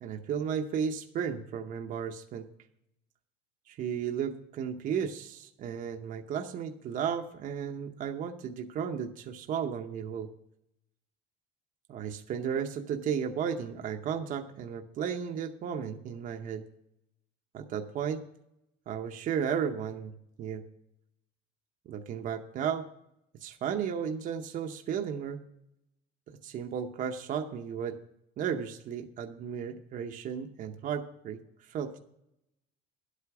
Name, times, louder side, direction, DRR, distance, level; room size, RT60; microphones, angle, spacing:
voice 1, 0.0-2.5 3.7-10.3 11.9-16.7 17.5-18.2 18.9-20.1 20.4-20.6 21.9-22.9 23.4-25.4 26.3-28.0 28.4-31.4 31.7-32.0, right 7 dB, 45° right, 5 dB, 0.8 m, -34 dB
10.5 x 8.3 x 5.9 m, 0.80 s
cardioid pair, 140°, 20 cm